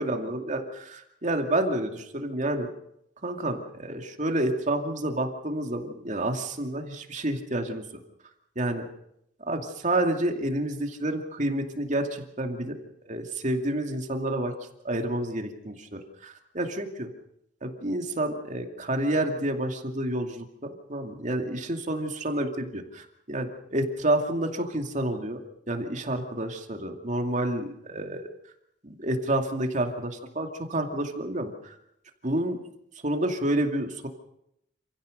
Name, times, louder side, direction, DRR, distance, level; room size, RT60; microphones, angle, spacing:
voice 1, 0.0-2.7 3.2-7.9 8.6-8.9 9.5-12.8 13.0-14.5 14.8-17.1 17.6-28.3 28.8-31.8 32.2-32.6 33.0-34.1, right 1 dB, 40° right, 4 dB, 2.4 m, -29 dB
28.0 x 16.0 x 6.6 m, 0.78 s
head